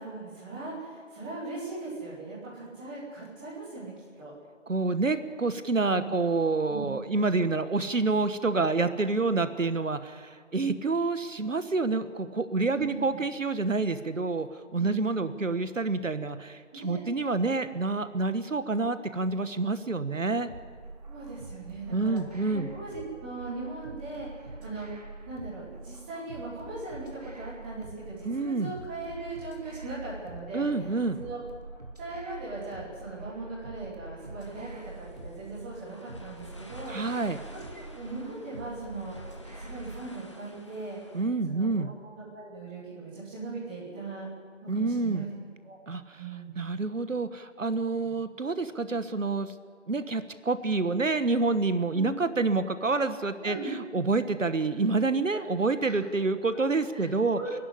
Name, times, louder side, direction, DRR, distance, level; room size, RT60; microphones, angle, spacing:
voice 1, 0.0-3.9 4.2-4.3 5.9-6.0 6.7-6.8 9.2-9.3 12.7-13.0 14.7-15.4 16.7-17.0 21.0-31.4 32.0-34.7 34.9-36.9 37.5-39.1 39.6-41.0 41.5-44.3 44.6-45.3 45.6-45.7 46.2-46.6 48.0-48.2 51.9-52.1 53.4-53.7 56.5-56.6 56.9-57.0 57.3-57.5, right 3 dB, 10° right, -9 dB, 3.1 m, -39 dB
voice 2, 4.7-20.5 21.9-22.7 28.2-28.7 30.5-31.2 36.9-37.4 41.1-41.9 44.7-45.2 45.9-46.2 46.6-49.5 49.9-57.4, right 3 dB, 85° right, 12 dB, 1.2 m, -28 dB
sound 1, 20.5-40.1, right 2 dB, 30° right, 1.6 m, -45 dB
sound 2, 34.4-41.3, left 1 dB, 25° left, 1.2 m, -51 dB
26.5 x 11.0 x 9.9 m, 2.1 s
figure-of-eight pair, 170°, 38 cm